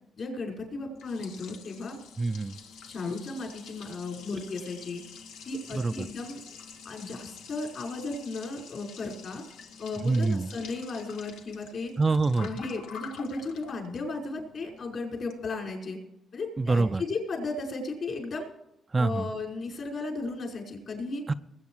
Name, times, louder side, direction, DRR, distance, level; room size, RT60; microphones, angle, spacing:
voice 1, 0.2-2.0 2.9-5.0 5.5-6.4 6.9-9.4 9.8-11.9 12.4-16.0 16.3-18.5 19.0-21.2, left 3 dB, 50° left, 1 dB, 5.2 m, -35 dB
Liquid, 0.6-15.8, left 6 dB, 85° left, 1.2 m, -48 dB
voice 2, 2.2-2.6 5.7-6.1 10.0-10.5 12.0-12.5 16.6-17.0 18.9-19.3 21.3-21.4, right 3 dB, 25° right, 10 dB, 0.5 m, -25 dB
20.5 x 8.6 x 4.8 m, 0.84 s
cardioid pair, 90°, 0 cm